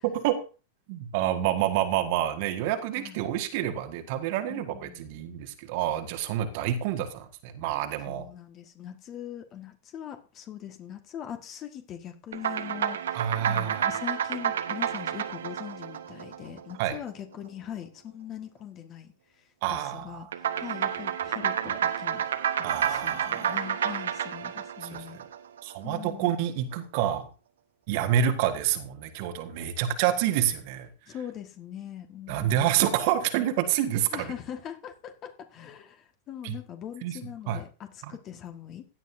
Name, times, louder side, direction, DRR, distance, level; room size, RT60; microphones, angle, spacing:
voice 1, 0.9-8.3 13.1-13.9 16.8-17.0 19.6-20.2 22.6-23.6 24.8-25.2 25.6-27.3 27.9-30.9 32.3-34.3 36.4-36.6 37.0-37.2 37.5-37.6, right 11 dB, 50° right, 1.5 m, -28 dB
voice 2, 3.0-3.4 4.5-5.2 8.1-22.2 22.6-25.2 25.8-26.5 31.1-32.9 34.1-38.9, left 10 dB, 35° left, 1.6 m, -42 dB
sound 1, 12.3-17.0 20.3-25.7, right 9 dB, 65° right, 1.0 m, -30 dB
16.5 x 10.5 x 2.7 m
figure-of-eight pair, 90°, 0 cm